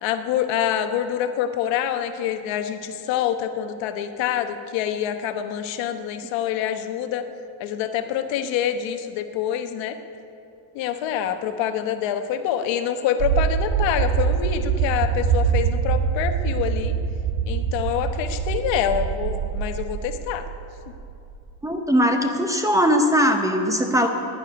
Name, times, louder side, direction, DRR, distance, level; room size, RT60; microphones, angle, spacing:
voice 1, 0.0-7.2 7.6-10.0 10.7-16.9 17.5-20.4, left 9 dB, 75° left, 8 dB, 1.1 m, -26 dB
sound 1, 13.2-21.3, right 7 dB, 60° right, 1.1 m, -24 dB
voice 2, 21.6-24.1, equal, 5° right, 4 dB, 0.7 m, -20 dB
11.0 x 9.8 x 9.8 m, 2.6 s
cardioid pair, 170°, 44 cm